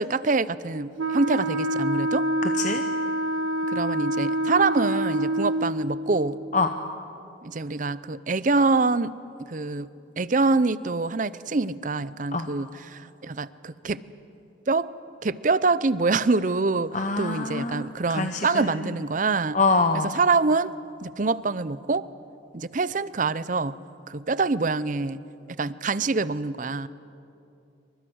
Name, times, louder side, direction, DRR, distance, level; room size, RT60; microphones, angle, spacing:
voice 1, 0.0-2.3 3.7-6.4 7.4-9.1 9.5-9.9 10.2-14.0 14.7-14.9 15.2-19.6 19.9-20.7 21.0-22.1 22.5-23.7 24.1-25.2 25.6-26.9, right 3 dB, 40° right, 17 dB, 0.6 m, -25 dB
Wind instrument woodwind instrument, 1.0-5.8, right 1 dB, 85° right, 1.5 m, -26 dB
voice 2, 16.9-18.9 19.5-20.1, left 3 dB, 40° left, 6 dB, 0.9 m, -25 dB
28.5 x 24.5 x 6.3 m, 2.7 s
head